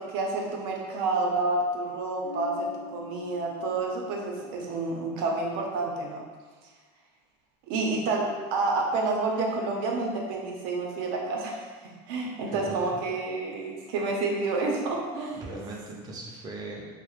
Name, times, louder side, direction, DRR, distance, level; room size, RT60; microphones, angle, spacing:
voice 1, 0.0-6.2 7.7-11.6 12.1-15.4, right 3 dB, 85° right, 0 dB, 0.5 m, -29 dB
Bass guitar, 2.2-5.8, left 2 dB, 85° left, 0.6 m, -45 dB
voice 2, 12.5-13.0 15.4-16.9, right 2 dB, 30° right, -2 dB, 0.5 m, -39 dB
2.3 x 2.0 x 3.0 m, 1.4 s
cardioid pair, 135°, 13 cm